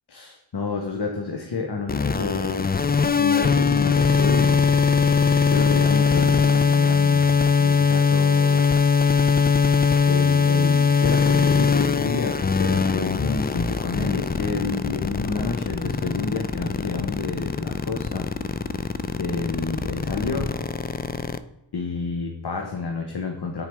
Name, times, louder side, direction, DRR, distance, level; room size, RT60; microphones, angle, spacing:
voice 1, 0.1-2.7 3.0-4.7 5.2-7.3 7.6-8.7 10.1-18.3 19.2-20.5 21.7-23.6, left 4 dB, 60° left, 3 dB, 1.0 m, -29 dB
sound 1, 1.9-21.4, left 5 dB, 25° left, 0.4 m, -21 dB
9.5 x 4.6 x 3.5 m, 0.94 s
cardioid pair, 45°, 44 cm